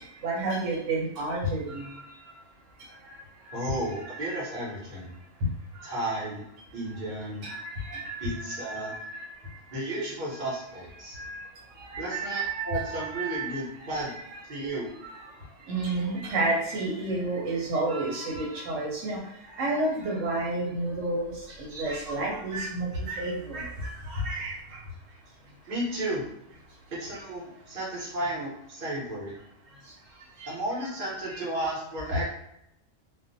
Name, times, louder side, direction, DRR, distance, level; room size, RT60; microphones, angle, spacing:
voice 1, 0.2-2.0 3.0-3.2 3.4-4.4 5.4-5.5 7.4-9.3 11.1-11.5 11.8-14.4 15.0-15.3 15.7-19.2 19.6-21.3 21.6-24.6 30.4-30.5 31.3-31.4 32.1-32.3, right 2 dB, 85° right, -2 dB, 1.1 m, -31 dB
voice 2, 3.5-5.1 5.8-6.4 6.7-7.5 8.2-8.9 9.7-11.2 12.0-14.1 14.5-14.9 25.7-26.2 26.9-29.4 30.4-32.3, right 1 dB, 40° right, -5 dB, 1.0 m, -33 dB
2.5 x 2.1 x 2.5 m, 0.78 s
omnidirectional pair, 1.3 m